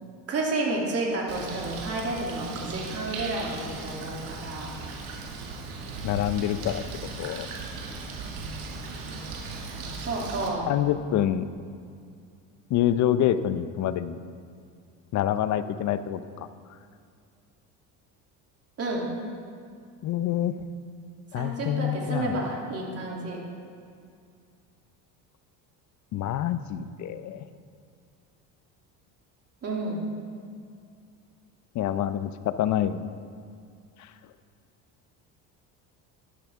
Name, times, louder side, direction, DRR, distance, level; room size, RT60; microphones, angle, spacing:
voice 1, 0.3-4.8 10.0-10.7 18.8-19.0 21.3-23.4 29.6-30.0, right 2 dB, 40° right, -2 dB, 3.0 m, -30 dB
Bird, 1.3-10.5, right 3 dB, 75° right, 2.1 m, -37 dB
voice 2, 6.0-6.8 7.2-7.5 10.7-11.5 12.7-14.2 15.1-16.5 20.0-20.5 21.3-22.4 26.1-27.4 31.7-33.2, left 11 dB, 50° left, 13 dB, 0.6 m, -26 dB
12.0 x 11.5 x 3.6 m, 2.3 s
supercardioid pair, 105°, 38 cm